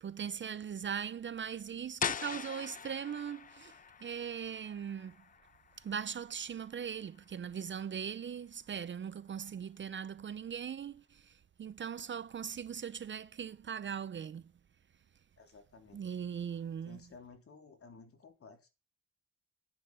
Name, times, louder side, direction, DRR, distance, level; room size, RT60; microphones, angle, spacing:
voice 1, 0.0-5.2 5.8-14.4 15.9-17.0, right 8 dB, 40° right, 0.7 m, -40 dB
sound 1, 2.0-7.6, left 7 dB, 30° left, 0.5 m, -42 dB
voice 2, 15.4-16.0 16.9-18.7, left 4 dB, 50° left, 3.7 m, -55 dB
10.0 x 10.0 x 5.6 m
cardioid pair, 90°, 30 cm